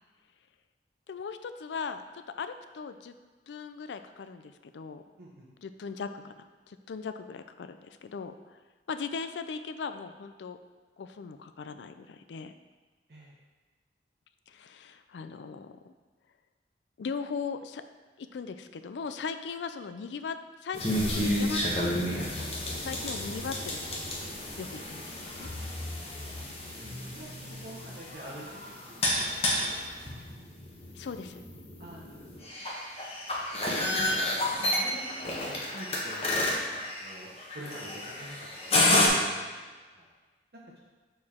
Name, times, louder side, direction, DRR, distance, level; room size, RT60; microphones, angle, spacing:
voice 1, 1.1-3.1 3.5-5.0 5.6-8.6 8.9-10.6 11.0-12.5 14.5-15.9 17.0-17.8 18.2-24.1 24.6-25.5 30.2-30.3 31.0-31.4, left 5 dB, 85° left, 10 dB, 0.4 m, -39 dB
sound 1, 20.7-39.1, left 1 dB, 35° left, 1.0 m, -31 dB
voice 2, 26.0-26.5 26.7-29.3 29.6-29.9 30.3-30.4 31.8-32.5 33.3-33.5 34.6-38.4 38.8-40.1 40.5-40.8, right 1 dB, 60° right, -4 dB, 0.8 m, -47 dB
6.6 x 4.5 x 3.6 m, 1.3 s
head